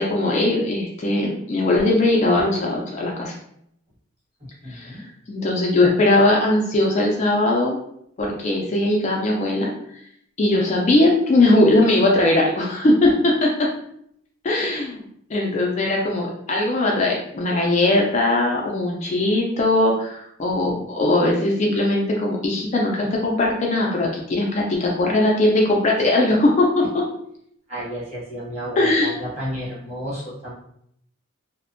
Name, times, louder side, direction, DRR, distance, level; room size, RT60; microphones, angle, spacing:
voice 1, 0.0-3.3 4.7-5.0 5.3-7.8 8.2-9.7 10.4-13.7 14.4-15.0 15.3-26.8 28.7-29.1, left 2 dB, 35° left, -2 dB, 0.3 m, -20 dB
voice 2, 4.6-5.0 27.7-30.5, equal, 30° right, -7 dB, 1.0 m, -32 dB
2.5 x 2.1 x 2.5 m, 0.71 s
head